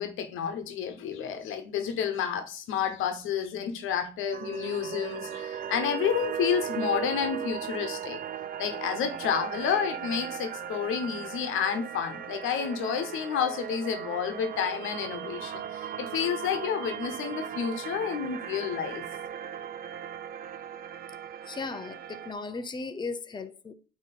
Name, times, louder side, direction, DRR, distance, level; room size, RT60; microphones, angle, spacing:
voice 1, 0.0-8.2 8.6-19.0, left 8 dB, 85° left, 1.0 m, -30 dB
sound 1, 4.3-22.3, right 9 dB, 45° right, 0.5 m, -37 dB
voice 2, 21.5-23.7, left 4 dB, 20° left, 0.6 m, -36 dB
9.0 x 3.0 x 4.2 m
cardioid pair, 90°, 20 cm